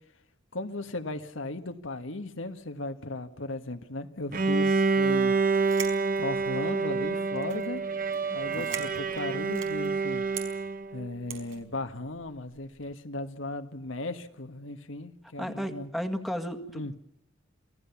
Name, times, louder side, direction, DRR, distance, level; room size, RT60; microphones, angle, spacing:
voice 1, 0.5-5.3 6.2-7.8 8.3-10.2 10.9-15.9 16.7-16.9, left 2 dB, 70° left, 1.6 m, -36 dB
Bowed string instrument, 4.3-11.1, right 4 dB, 45° right, 1.2 m, -27 dB
sound 1, 5.5-6.8 7.4-7.8 8.1-8.2 8.5-9.9 10.3-10.5 11.3-11.6, right 8 dB, 80° right, 4.9 m, -40 dB
voice 2, 15.4-17.0, equal, ahead, 1.9 m, -34 dB
28.0 x 17.5 x 7.2 m
head